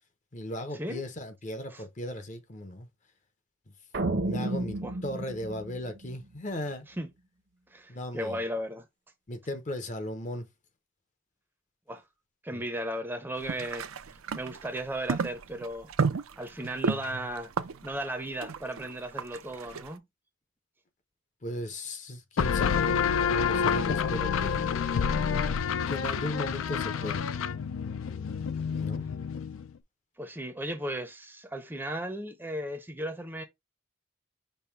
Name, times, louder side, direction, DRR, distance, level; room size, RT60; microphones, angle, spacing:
voice 1, 0.3-2.9 4.1-6.9 7.9-8.4 9.3-10.5 12.5-12.6 21.4-23.0 23.3-24.6 25.9-27.3 28.6-29.1, left 1 dB, 35° left, 0.7 m, -36 dB
sound 1, 3.9-6.4, right 2 dB, 55° right, 0.8 m, -32 dB
voice 2, 7.7-8.8 11.9-12.0 12.4-13.9 14.3-15.9 16.4-17.5 17.8-20.0 30.2-33.4, right 1 dB, 10° right, 0.6 m, -35 dB
sound 2, 13.4-19.9, right 5 dB, 85° right, 0.5 m, -33 dB
sound 3, 22.4-29.7, left 6 dB, 80° left, 0.4 m, -28 dB
5.4 x 2.1 x 4.4 m
head